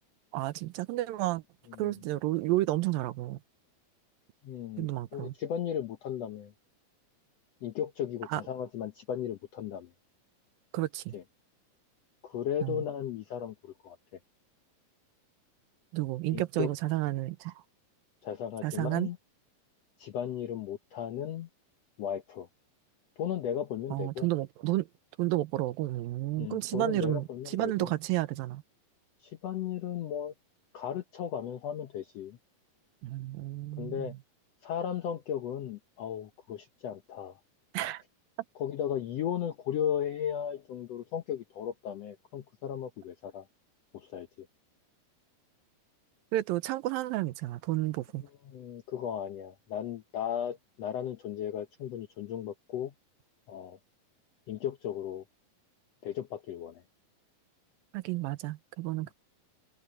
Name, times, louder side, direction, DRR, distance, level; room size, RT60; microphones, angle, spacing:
voice 1, 0.3-1.4 1.8-3.4 4.8-5.3 8.3-8.4 10.7-11.2 12.6-12.8 15.9-17.5 18.6-19.1 23.9-24.9 25.2-28.6 33.0-34.2 37.7-38.0 46.3-48.2 57.9-59.1, right 17 dB, 85° right, 2.5 m, -31 dB
voice 2, 4.4-6.5 7.6-9.9 11.1-11.2 12.2-14.0 16.3-16.7 18.2-19.2 20.0-21.5 22.0-22.5 23.2-24.3 26.4-27.9 29.2-30.3 30.7-32.4 33.8-34.1 34.6-37.4 38.6-43.4 43.9-44.5 48.4-52.9 53.5-53.8 54.5-55.2 56.0-56.8, left 9 dB, 75° left, 1.5 m, -35 dB
omnidirectional pair, 4.1 m